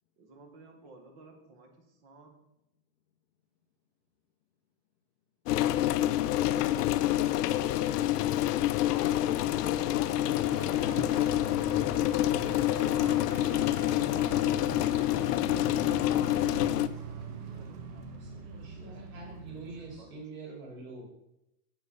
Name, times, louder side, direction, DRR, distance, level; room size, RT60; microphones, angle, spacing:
voice 1, 0.2-1.7 2.0-2.4 9.7-10.9 12.5-14.1 17.4-18.7 19.0-19.7 20.0-20.2, right 3 dB, 35° right, 4 dB, 1.7 m, -53 dB
sound 1, 5.5-16.9, left 13 dB, 75° left, 0.7 m, -27 dB
voice 2, 8.8-10.2 12.1-12.6 16.0-17.3 17.5-17.7, left 8 dB, 30° left, 3 dB, 0.6 m, -45 dB
sound 2, 10.2-20.0, right 5 dB, 75° right, 1.6 m, -43 dB
voice 3, 17.2-17.9 18.2-21.0, right 3 dB, 55° right, -1 dB, 4.0 m, -46 dB
8.0 x 7.3 x 5.5 m, 0.86 s
supercardioid pair, 180°, 47 cm